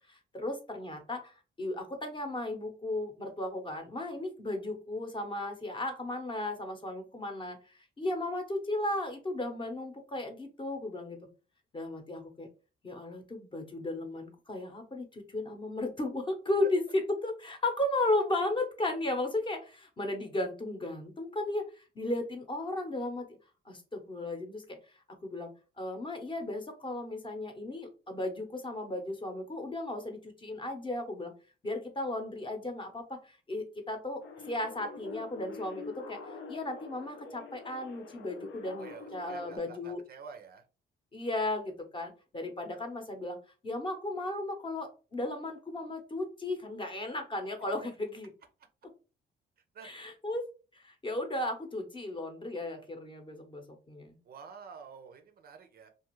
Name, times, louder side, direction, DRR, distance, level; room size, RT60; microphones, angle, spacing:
voice 1, 0.1-11.2 11.7-12.5 12.8-16.8 17.2-23.3 23.7-24.8 25.2-25.5 25.8-31.3 31.6-40.0 41.1-43.4 43.6-48.3 49.8-50.5 50.7-54.2, left 2 dB, 25° left, 4 dB, 0.8 m, -35 dB
sound 1, 34.2-39.6, left 4 dB, 75° left, 0.6 m, -46 dB
voice 2, 38.8-40.6 49.7-49.9 54.2-55.9, right 6 dB, 50° right, 6 dB, 0.5 m, -49 dB
2.5 x 2.4 x 3.0 m, 0.34 s
cardioid pair, 95°, 20 cm